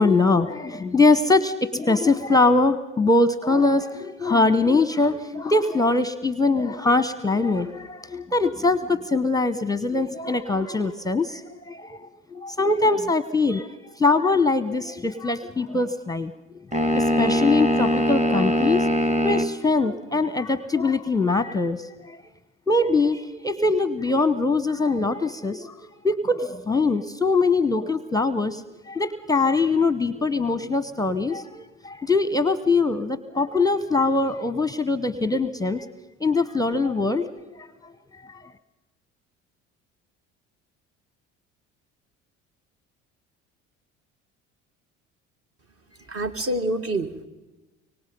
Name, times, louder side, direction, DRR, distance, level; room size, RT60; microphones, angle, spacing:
voice 1, 0.0-13.7 14.0-16.3 16.7-18.9 19.2-22.2 22.7-25.7 26.0-28.6 28.9-35.9 36.2-37.7 38.3-38.4, left 3 dB, 10° left, 14 dB, 0.9 m, -22 dB
sound 1, 16.7-19.5, equal, 20° right, 2.0 m, -22 dB
voice 2, 46.1-47.3, right 1 dB, 40° right, 7 dB, 2.1 m, -27 dB
25.0 x 24.0 x 5.4 m, 1.1 s
hypercardioid pair, 65°, 36 cm